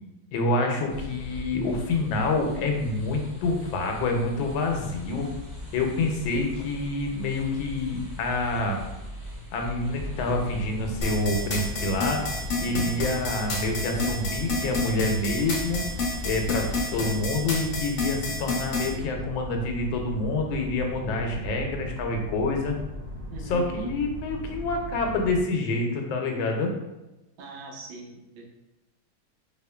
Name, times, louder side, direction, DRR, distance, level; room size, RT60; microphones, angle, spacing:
voice 1, 0.3-5.3 5.7-8.8 9.5-12.2 12.6-16.6 16.9-22.7 23.4-26.7, left 2 dB, 85° left, 2 dB, 1.4 m, -27 dB
sound 1, 0.9-17.2, left 1 dB, 15° right, 1.0 m, -41 dB
sound 2, 9.8-25.4, left 1 dB, 40° right, 1.4 m, -38 dB
sound 3, 11.0-18.9, left 3 dB, 55° left, 0.8 m, -29 dB
voice 2, 23.3-23.8 27.4-28.5, right 3 dB, 85° right, 0 dB, 1.5 m, -41 dB
4.2 x 2.9 x 2.2 m, 1.0 s
omnidirectional pair, 2.1 m